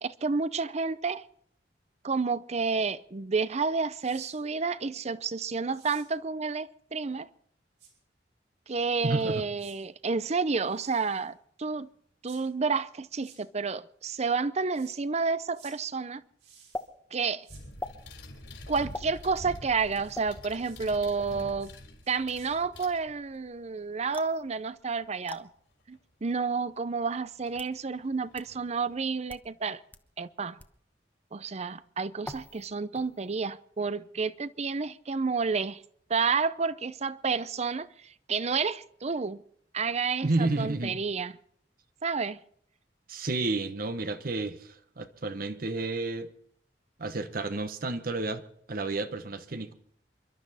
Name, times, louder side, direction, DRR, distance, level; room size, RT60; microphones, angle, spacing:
voice 1, 0.0-1.2 2.0-7.3 8.7-11.9 12.2-16.2 17.1-17.5 18.7-21.7 22.1-25.5 25.9-29.8 30.2-30.6 31.3-35.8 36.1-37.9 38.3-39.4 39.7-41.3 42.0-42.4, right 4 dB, 40° right, 0.6 m, -30 dB
sound 1, 4.0-4.3 5.7-6.1 7.8-7.9 9.6-9.8 10.6-11.3 12.2-12.4 13.2-13.4 14.7-14.9 15.5-15.7 16.4-16.9 17.4-17.6 20.0-20.2 20.6-20.8 21.6-21.8 22.0-22.5, right 7 dB, 80° right, 5.7 m, -55 dB
voice 2, 9.0-9.4 40.2-41.0 43.1-46.3 47.0-48.4 48.7-49.7, right 2 dB, 55° right, 1.1 m, -31 dB
sound 2, 16.7-16.9 17.8-18.0 18.9-19.1 20.1-20.3 21.2-21.4 24.1-24.4 25.3-25.4 26.4-26.5 27.3-27.8 28.4-28.5 29.2-29.5 29.9-30.0 30.6-30.8 32.2-32.7 32.9-33.4, left 1 dB, 10° left, 1.0 m, -41 dB
sound 3, 17.5-23.5 25.9-26.0 27.5-27.6 28.0-29.0, left 1 dB, 75° left, 4.1 m, -46 dB
28.0 x 12.0 x 4.2 m
head